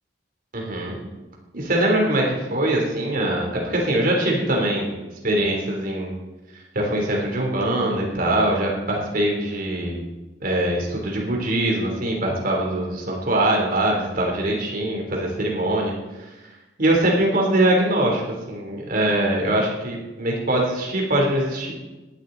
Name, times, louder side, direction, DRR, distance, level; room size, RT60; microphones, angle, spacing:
voice 1, 0.5-1.0 1.5-5.0 5.2-6.2 6.5-10.0 10.4-15.9 16.8-18.2 18.5-21.7, right 1 dB, 50° right, -1 dB, 3.5 m, -22 dB
19.0 x 12.0 x 4.0 m, 1.1 s
head